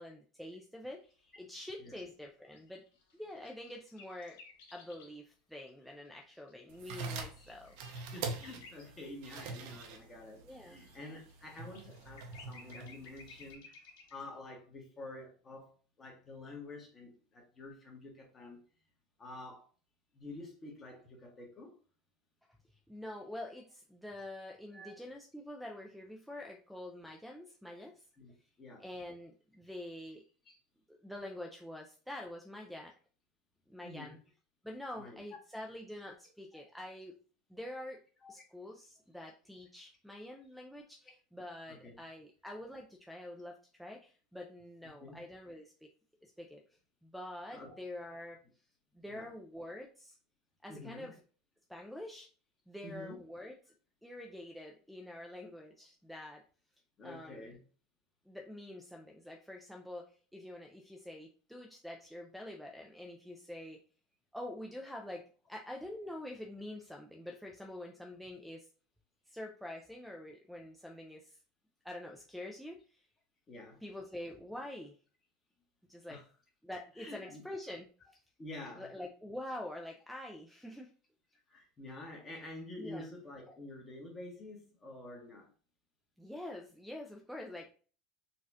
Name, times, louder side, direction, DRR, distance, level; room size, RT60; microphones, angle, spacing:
voice 1, 0.0-2.8 3.1-4.4 4.7-7.8 10.4-10.8 22.9-28.0 28.8-30.2 30.9-32.9 33.7-34.2 34.6-37.1 37.5-38.0 38.3-45.9 46.2-46.6 47.0-48.4 48.9-50.2 50.6-51.2 51.7-52.3 52.7-53.7 54.0-56.4 57.0-57.5 58.3-63.8 64.3-65.2 65.5-68.7 69.3-71.4 71.8-73.1 73.8-75.0 75.9-76.2 76.6-77.9 78.8-80.9 82.8-83.1 86.2-87.7, left 1 dB, ahead, 2 dB, 0.4 m, -46 dB
sound 1, 1.1-1.3 2.6-5.1 5.7-8.9 9.4-9.5 10.0-14.2, left 4 dB, 80° left, 0.9 m, -58 dB
sound 2, 6.7-13.5, right 4 dB, 65° right, 0.6 m, -44 dB
voice 2, 8.1-13.8 14.1-15.7 16.0-18.6 19.2-19.7 20.1-21.7 24.7-24.9 28.2-28.3 28.6-28.8 30.4-30.6 33.8-34.2 35.0-35.2 36.5-36.6 38.2-38.3 41.7-42.0 45.0-45.2 47.5-47.7 49.1-49.3 50.7-51.1 52.8-53.2 57.0-57.6 73.5-73.8 76.1-76.2 77.0-77.4 78.4-78.9 81.5-85.5, left 2 dB, 25° left, 0 dB, 1.2 m, -48 dB
4.1 x 2.3 x 2.6 m, 0.40 s
supercardioid pair, 120°, 0 cm